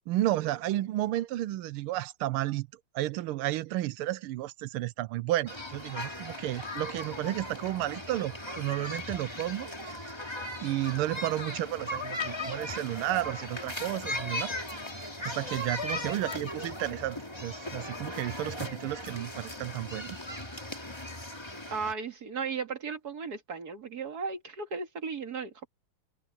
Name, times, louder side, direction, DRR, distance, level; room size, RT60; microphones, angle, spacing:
voice 1, 0.1-2.7 2.9-9.7 10.2-14.5 15.2-20.2, right 15 dB, 90° right, 1.5 m, -32 dB
sound 1, 5.5-21.9, left 1 dB, 10° left, 2.5 m, -38 dB
voice 2, 21.7-25.7, right 5 dB, 45° right, 2.5 m, -36 dB
omnidirectional pair, 2.3 m